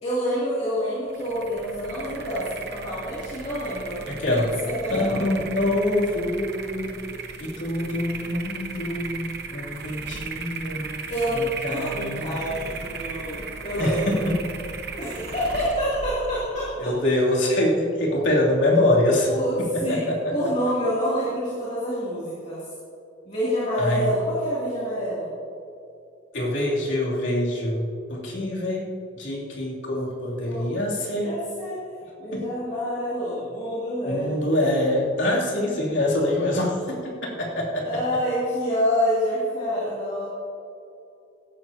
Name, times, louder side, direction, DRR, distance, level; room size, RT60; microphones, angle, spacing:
voice 1, 0.0-5.3 11.1-14.2 15.0-16.9 19.3-20.1 20.3-22.6 23.2-25.3 30.4-31.8 32.2-34.5 37.8-40.3, equal, 35° left, -8 dB, 2.8 m, -27 dB
sound 1, 1.1-17.4, right 4 dB, 55° right, 1.0 m, -37 dB
voice 2, 4.1-4.5 4.9-7.0 7.4-11.0 11.3-12.3 13.8-14.4 16.8-19.3 19.6-20.5 23.8-24.1 26.3-31.3 32.3-32.4 34.0-37.0 37.4-38.0, left 1 dB, 75° left, -4 dB, 2.9 m, -25 dB
16.5 x 12.5 x 2.8 m, 2.7 s
head